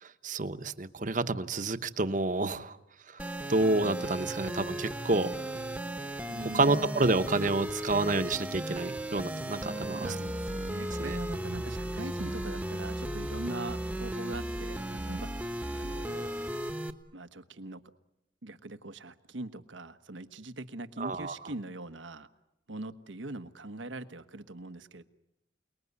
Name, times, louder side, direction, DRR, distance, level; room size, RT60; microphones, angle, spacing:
voice 1, 0.0-2.8 3.1-5.3 6.4-10.2 11.0-11.2 21.0-21.4, right 2 dB, 45° right, 11 dB, 1.1 m, -29 dB
sound 1, 3.2-16.9, right 1 dB, 5° right, 1.2 m, -35 dB
voice 2, 6.3-6.7 9.3-16.3 17.1-17.8 18.4-22.3 22.7-25.0, right 2 dB, 90° right, 10 dB, 1.3 m, -42 dB
28.5 x 20.5 x 9.7 m, 0.88 s
head